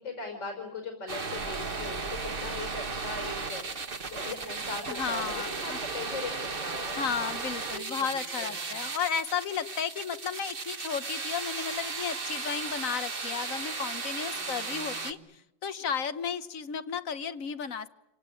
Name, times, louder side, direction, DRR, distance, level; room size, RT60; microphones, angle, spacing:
voice 1, 0.0-7.4 7.7-7.9 8.3-8.8 14.3-15.2, left 3 dB, 75° left, 4 dB, 5.8 m, -40 dB
sound 1, 1.1-15.1, right 4 dB, 30° right, 1.4 m, -35 dB
voice 2, 4.9-5.8 6.9-17.9, left 6 dB, 50° left, 13 dB, 1.3 m, -33 dB
27.5 x 18.5 x 9.9 m, 0.93 s
omnidirectional pair, 2.0 m